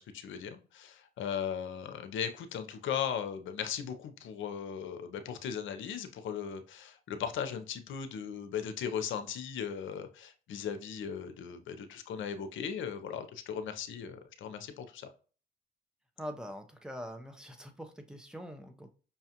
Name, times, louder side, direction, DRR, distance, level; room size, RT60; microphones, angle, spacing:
voice 1, 0.0-15.1, left 8 dB, 75° left, 9 dB, 0.6 m, -37 dB
voice 2, 16.2-18.9, equal, 5° right, 6 dB, 0.6 m, -43 dB
5.5 x 2.4 x 2.8 m, 0.37 s
cardioid pair, 90°, 20 cm